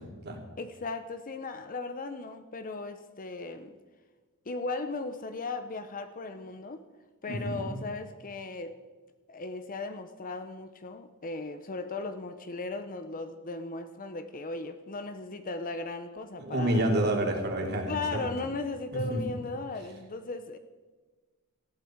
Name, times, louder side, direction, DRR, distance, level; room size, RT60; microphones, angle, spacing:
voice 1, 0.0-0.4 7.3-7.8 16.4-18.2 18.9-19.2, right 1 dB, 50° right, 2 dB, 3.2 m, -29 dB
voice 2, 0.6-3.7 4.5-6.8 7.2-8.7 9.3-17.1 17.9-20.6, left 3 dB, 40° left, 9 dB, 0.8 m, -37 dB
18.5 x 14.5 x 4.7 m, 1.4 s
head